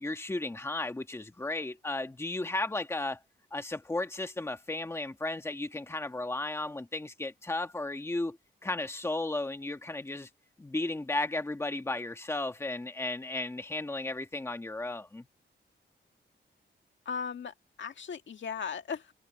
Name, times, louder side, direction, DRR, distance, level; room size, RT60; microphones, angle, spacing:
voice 1, 0.0-3.2 3.5-10.3 10.6-15.3, left 2 dB, 15° left, 1.4 m, -34 dB
voice 2, 17.1-19.1, left 6 dB, 70° left, 1.9 m, -37 dB
wide cardioid pair, 165°, 20 cm